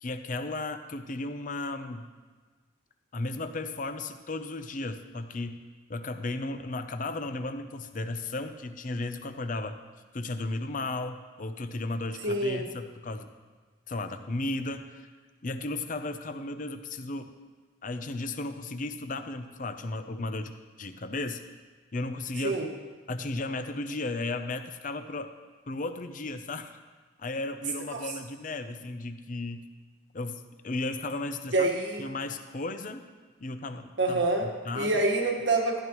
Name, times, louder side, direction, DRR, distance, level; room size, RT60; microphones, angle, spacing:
voice 1, 0.0-2.1 3.1-5.6 5.9-9.8 10.1-13.3 13.9-15.1 15.4-17.3 17.8-21.4 21.9-22.6 23.1-25.3 25.7-26.8 27.2-29.7 30.1-31.7 32.0-33.0 33.4-35.0, left 2 dB, 40° left, 8 dB, 0.6 m, -35 dB
voice 2, 12.2-12.7 22.4-22.7 27.9-28.1 31.5-32.1 34.0-34.5 34.7-35.8, right 2 dB, 70° right, 2 dB, 1.5 m, -26 dB
14.5 x 10.5 x 3.1 m, 1.4 s
head